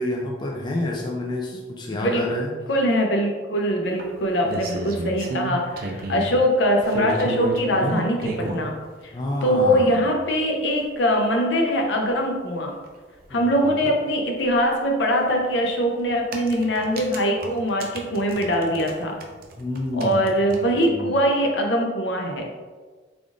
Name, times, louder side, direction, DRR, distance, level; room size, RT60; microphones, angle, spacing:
voice 1, 0.0-2.5 9.1-10.0 13.3-13.9 19.6-20.2 20.5-21.1, left 1 dB, 20° left, -2 dB, 0.3 m, -29 dB
voice 2, 1.9-2.2 2.7-8.7 9.0-9.1 9.4-12.7 13.3-19.1 20.0-22.5, equal, 70° left, 1 dB, 0.6 m, -22 dB
sound 1, 4.0-6.3 6.8-8.7 9.6-9.7 10.1-10.2 10.4-10.5 10.8-10.9 12.9-13.0 13.2-13.3 15.2-15.4 16.1-18.9 19.2-20.9, right 2 dB, 50° right, 0.4 m, -31 dB
3.5 x 2.4 x 3.7 m, 1.4 s
head